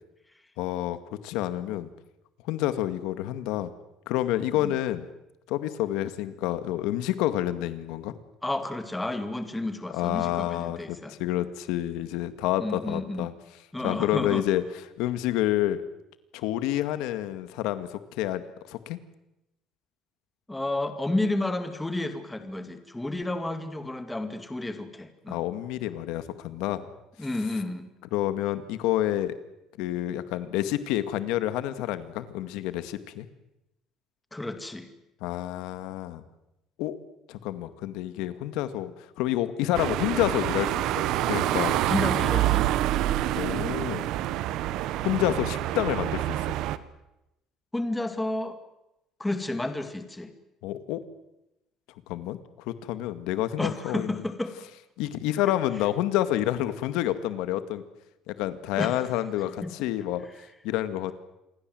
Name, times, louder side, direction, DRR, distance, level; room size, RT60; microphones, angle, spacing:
voice 1, 0.6-1.0 1.2-1.9 2.5-3.7 4.1-5.1 5.5-8.1 9.9-13.3 13.8-14.6 15.0-15.8 16.3-19.0 25.3-26.8 28.1-29.3 29.8-33.3 35.2-36.2 36.8-37.0 37.3-38.9 39.2-41.7 43.3-44.1 45.0-46.4 50.6-51.0 52.1-52.4 52.7-54.2 55.0-57.8 58.3-60.3 60.6-61.1, left 13 dB, 90° left, 12 dB, 2.0 m, -28 dB
voice 2, 8.4-11.1 12.6-13.3 13.7-14.4 20.5-25.4 27.2-27.9 34.3-34.9 41.9-42.8 47.7-48.6 49.2-50.3 53.6-54.5 58.8-59.0 59.6-59.7, left 2 dB, 5° left, 9 dB, 2.1 m, -31 dB
sound 1, 39.7-46.8, right 13 dB, 65° right, 1.3 m, -27 dB
28.0 x 22.0 x 7.9 m, 0.89 s
cardioid pair, 165°, 0 cm